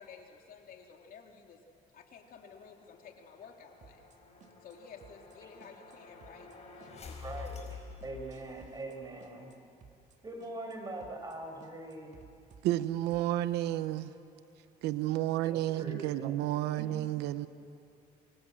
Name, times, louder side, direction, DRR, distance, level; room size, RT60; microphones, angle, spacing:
voice 1, 0.0-1.6 1.9-4.1 4.6-7.2, left 6 dB, 60° left, 3 dB, 2.8 m, -53 dB
sound 1, 2.1-8.9, left 5 dB, 40° left, 4.9 m, -50 dB
sound 2, 3.8-4.2 4.4-4.8 5.0-5.4 5.6-6.0 6.2-6.6 6.8-9.0 9.2-9.6 9.8-10.2 10.4-10.8 11.0-11.4 11.6-13.3, right 6 dB, 45° right, 2.1 m, -57 dB
voice 2, 7.2-9.5 10.2-12.2 15.5-16.4 16.8-16.9, right 2 dB, 20° right, 3 dB, 5.6 m, -42 dB
voice 3, 12.6-14.1 14.8-17.5, right 14 dB, 90° right, 13 dB, 0.8 m, -31 dB
27.5 x 23.5 x 7.7 m, 2.6 s
cardioid pair, 110°, 17 cm